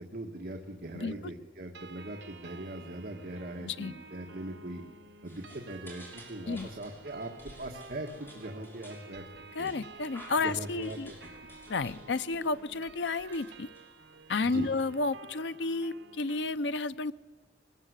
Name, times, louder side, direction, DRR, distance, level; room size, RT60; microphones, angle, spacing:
voice 1, 0.0-4.8 5.2-9.2 9.6-9.8 10.4-11.3 14.4-14.7, right 1 dB, 55° right, 2 dB, 1.8 m, -41 dB
voice 2, 0.9-1.3 3.6-3.9 6.5-6.7 9.5-11.1 11.7-13.7 14.3-17.1, left 3 dB, 75° left, 13 dB, 0.7 m, -32 dB
sound 1, 1.7-16.5, right 4 dB, 75° right, 1.4 m, -52 dB
sound 2, 5.2-14.3, equal, 15° left, 6.5 m, -54 dB
22.5 x 20.5 x 8.2 m, 1.2 s
head